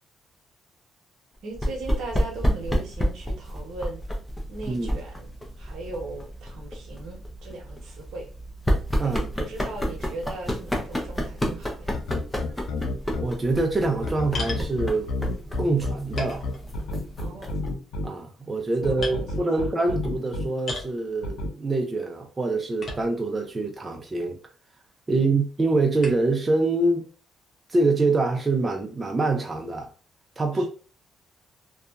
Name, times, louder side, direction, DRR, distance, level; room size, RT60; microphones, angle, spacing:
voice 1, 1.4-4.0 4.5-8.3 9.0-12.0 17.2-17.6 18.8-19.5 25.1-25.3 30.5-30.7, right 2 dB, 75° right, 0.9 m, -38 dB
sound 1, 1.5-17.7, equal, 15° left, 0.7 m, -30 dB
sound 2, 11.9-13.2 14.0-18.0 18.8-20.4 21.2-21.5, left 2 dB, 85° left, 0.5 m, -29 dB
voice 2, 13.2-15.1 15.6-16.5 18.0-24.4 25.1-27.1 27.7-29.9 30.4-30.7, right 3 dB, 25° right, 0.4 m, -25 dB
sound 3, 14.3-14.7 15.6-15.7 16.2-17.0 17.4-17.7 18.4-18.6 19.0-19.2 20.6-21.0 22.8-23.4 24.1-24.2 26.0-26.3, left 3 dB, 50° left, 0.8 m, -35 dB
2.7 x 2.3 x 2.3 m
cardioid pair, 90°, 0 cm